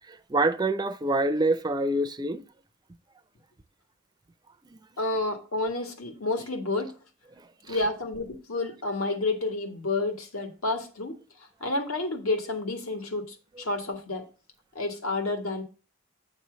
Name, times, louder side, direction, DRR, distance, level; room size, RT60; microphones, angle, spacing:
voice 1, 0.1-2.4 4.7-4.8 7.7-7.8, right 2 dB, 20° right, 0.4 m, -26 dB
voice 2, 5.0-6.9 7.7-11.2 11.6-14.2 14.7-15.6, left 2 dB, 80° left, 1.6 m, -30 dB
8.8 x 3.1 x 6.6 m
head